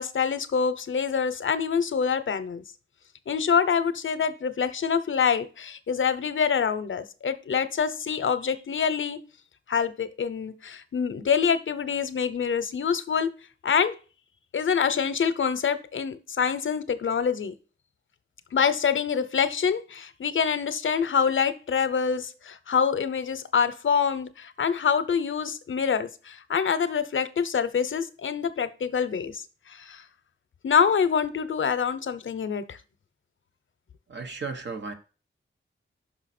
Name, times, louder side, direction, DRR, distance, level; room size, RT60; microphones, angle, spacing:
voice 1, 0.0-2.6 3.3-9.2 9.7-13.3 13.6-13.9 14.5-17.5 18.5-30.0 30.6-32.8, left 6 dB, 70° left, 12 dB, 0.7 m, -26 dB
voice 2, 34.1-34.9, right 4 dB, 60° right, 6 dB, 1.2 m, -34 dB
5.7 x 5.6 x 4.2 m, 0.35 s
wide cardioid pair, 130°, 21 cm